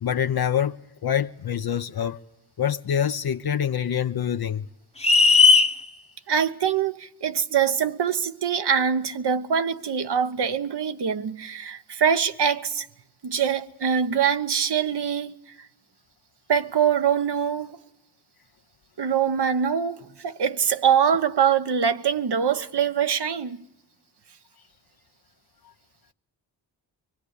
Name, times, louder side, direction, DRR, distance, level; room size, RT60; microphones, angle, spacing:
voice 1, 0.0-2.2 2.6-4.6, left 9 dB, 55° left, 0.8 m, -25 dB
sound 1, 5.0-5.7, left 4 dB, 15° left, 1.0 m, -15 dB
voice 2, 6.3-12.9 13.2-15.4 16.5-17.8 19.0-23.6, right 7 dB, 60° right, 1.1 m, -23 dB
24.0 x 19.0 x 8.3 m
cardioid pair, 45°, 45 cm